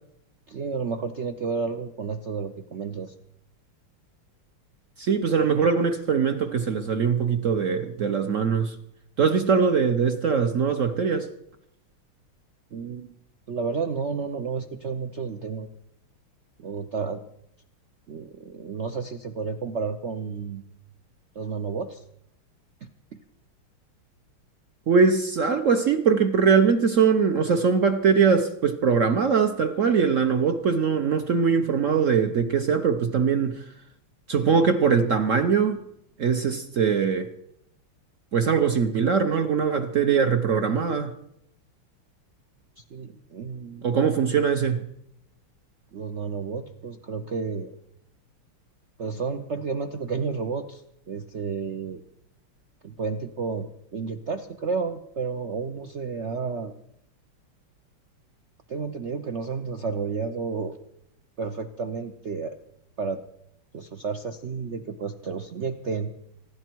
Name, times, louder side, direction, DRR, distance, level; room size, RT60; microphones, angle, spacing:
voice 1, 0.5-3.1 12.7-13.2 13.5-15.7 16.6-17.2 18.1-20.6 21.3-22.0 22.8-22.9 42.8-44.2 45.9-47.7 49.0-52.0 52.8-56.7 58.7-60.8 61.4-62.6 63.0-63.2 63.7-66.1, right 5 dB, 85° right, 0.6 m, -31 dB
voice 2, 5.0-8.7 9.2-11.3 24.9-33.6 34.3-35.8 36.2-37.3 38.3-41.1 43.8-44.8, right 6 dB, 55° right, 0.9 m, -22 dB
25.5 x 12.0 x 4.6 m
omnidirectional pair, 2.4 m